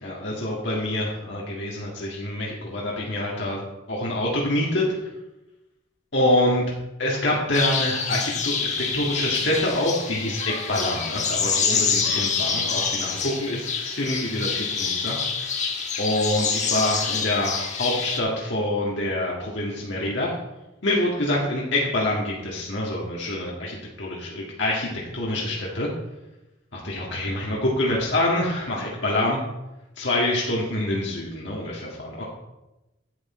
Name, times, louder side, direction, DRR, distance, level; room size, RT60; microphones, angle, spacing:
voice 1, 0.0-3.6 3.9-4.8 6.1-6.6 7.0-8.6 8.9-15.2 16.0-20.3 20.8-25.9 26.7-29.4 30.0-32.2, left 1 dB, 65° left, -4 dB, 2.0 m, -26 dB
sound 1, 7.5-18.2, left 5 dB, 40° left, 1.3 m, -27 dB
10.5 x 8.3 x 4.3 m, 0.97 s
head